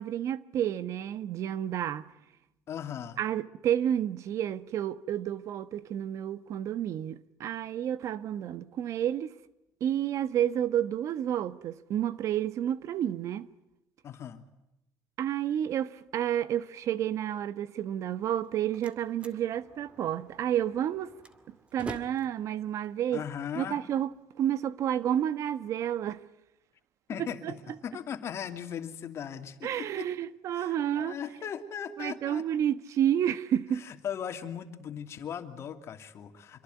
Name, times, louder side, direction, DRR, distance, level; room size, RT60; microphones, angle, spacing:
voice 1, 0.0-2.1 3.2-9.4 9.8-13.5 15.2-21.1 21.5-23.2 23.5-24.1 24.4-26.2 27.4-27.5 29.6-31.2 32.0-33.9, right 10 dB, 55° right, 1.2 m, -30 dB
voice 2, 2.7-3.2 14.0-14.4 23.1-23.8 27.1-30.1 30.5-32.4 33.7-36.6, left 8 dB, 50° left, 2.9 m, -38 dB
Slam, 18.3-24.2, right 2 dB, 20° right, 2.3 m, -48 dB
27.0 x 23.0 x 9.5 m
cardioid pair, 115°, 6 cm